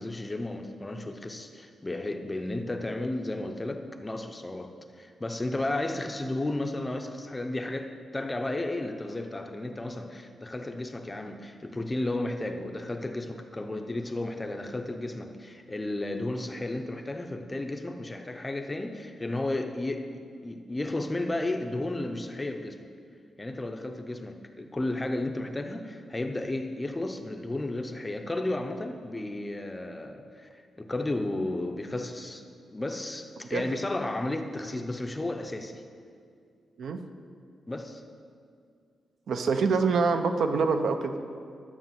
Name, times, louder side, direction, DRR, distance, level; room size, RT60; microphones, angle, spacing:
voice 1, 0.0-22.9 23.4-32.4 32.7-35.8 37.7-38.0, left 2 dB, 15° left, 6 dB, 0.6 m, -33 dB
voice 2, 39.3-41.1, right 4 dB, 65° right, 7 dB, 0.7 m, -25 dB
12.0 x 6.4 x 7.5 m, 2.3 s
wide cardioid pair, 170°, 0 cm